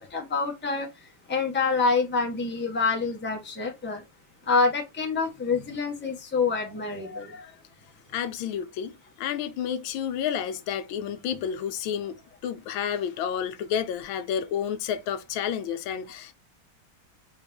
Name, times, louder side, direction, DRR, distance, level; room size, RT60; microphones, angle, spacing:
voice 1, 0.1-0.9 1.3-4.0 4.5-7.4, left 4 dB, 10° left, 0.8 m, -26 dB
voice 2, 8.1-8.9 9.2-12.2 12.4-16.3, left 8 dB, 80° left, 1.3 m, -30 dB
4.3 x 3.5 x 3.4 m
omnidirectional pair, 2.2 m